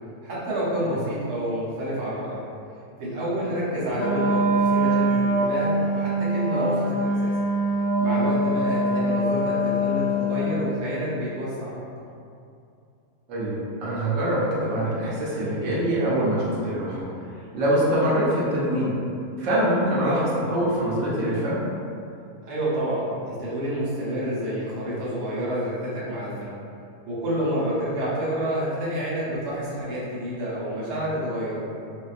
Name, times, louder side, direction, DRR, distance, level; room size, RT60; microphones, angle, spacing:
voice 1, 0.2-2.4 3.0-4.4 4.7-7.3 8.0-11.8 22.4-26.6 27.1-31.7, right 1 dB, 80° right, -8 dB, 1.4 m, -28 dB
Wind instrument woodwind instrument, 3.9-10.6, right 1 dB, 65° left, 0.7 m, -23 dB
voice 2, 13.3-17.0 17.5-19.0 19.4-21.6, right 1 dB, 60° right, -8 dB, 1.0 m, -24 dB
4.2 x 2.1 x 2.4 m, 2.5 s
omnidirectional pair, 1.6 m